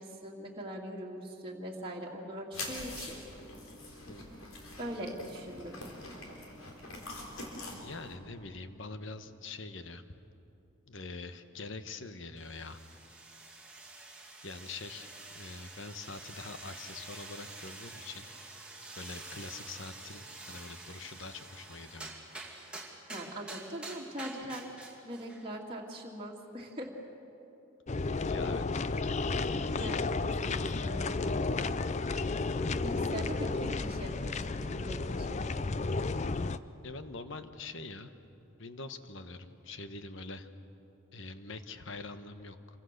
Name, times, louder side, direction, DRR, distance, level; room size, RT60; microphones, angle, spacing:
voice 1, 0.0-3.2 4.8-5.8 23.1-24.7 25.0-26.9 29.8-31.1 32.8-34.5 34.7-35.4, equal, 25° right, -4 dB, 2.2 m, -41 dB
sound 1, 2.5-8.2, left 2 dB, 75° left, 4.2 m, -44 dB
voice 2, 7.7-10.0 10.9-12.8 14.4-15.1 15.3-18.3 18.9-22.2 28.2-28.8 36.8-38.1 38.6-40.5 41.1-42.6, left 3 dB, 60° left, 9 dB, 1.2 m, -44 dB
sound 2, 12.4-25.5, right 2 dB, 5° right, 2.3 m, -48 dB
sound 3, 27.9-36.6, left 3 dB, 30° left, 0.5 m, -32 dB
27.0 x 24.0 x 6.6 m, 2.9 s
head